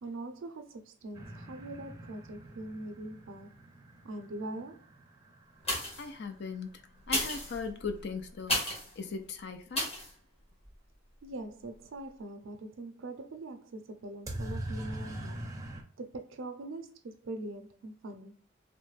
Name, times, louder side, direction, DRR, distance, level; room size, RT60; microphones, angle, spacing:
voice 1, 0.0-3.6 4.0-4.9 11.2-15.6 16.0-18.5, right 2 dB, 85° right, 0.5 m, -42 dB
sound 1, 1.1-6.9 14.3-15.8, right 1 dB, 20° right, 0.5 m, -43 dB
sound 2, 5.6-6.2 7.0-8.9 9.7-10.1 10.6-10.7, left 1 dB, 30° left, 1.2 m, -33 dB
voice 2, 6.0-6.8 7.1-9.9, left 4 dB, 60° left, 0.5 m, -39 dB
3.1 x 2.1 x 3.1 m
head